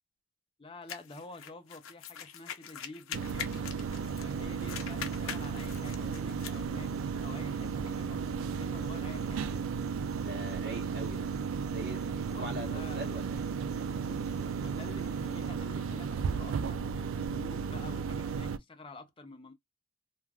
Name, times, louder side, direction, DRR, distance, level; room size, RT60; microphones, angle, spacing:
voice 1, 0.6-3.6 4.2-6.9 7.2-9.5 12.1-13.2 14.6-19.5, left 2 dB, 25° left, 0.5 m, -49 dB
sound 1, 0.9-4.3 4.6-6.6, left 8 dB, 70° left, 0.6 m, -43 dB
sound 2, 3.1-18.6, right 6 dB, 70° right, 0.3 m, -34 dB
sound 3, 3.8-15.5, equal, 20° right, 1.1 m, -51 dB
voice 2, 10.2-11.3 11.7-13.4, equal, 55° right, 1.0 m, -42 dB
2.4 x 2.3 x 3.2 m
head